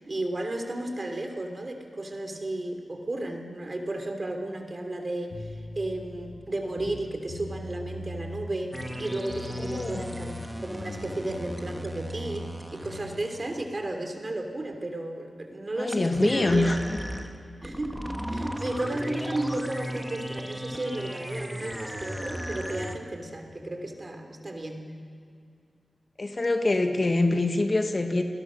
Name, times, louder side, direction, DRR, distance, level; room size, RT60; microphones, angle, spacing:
voice 1, 0.1-5.5 5.7-16.8 17.6-24.9, right 1 dB, 35° right, 4 dB, 3.1 m, -33 dB
sound 1, 5.3-6.4 6.7-8.5 8.8-10.5 10.8-13.2, left 1 dB, 80° left, 3.4 m, -40 dB
sound 2, 8.7-13.6 15.9-22.9, equal, 5° right, 1.7 m, -36 dB
voice 2, 9.6-10.0 15.7-16.8 26.2-28.2, left 2 dB, 35° left, 5 dB, 1.6 m, -25 dB
30.0 x 20.5 x 6.4 m, 2.4 s
wide cardioid pair, 95°, 0 cm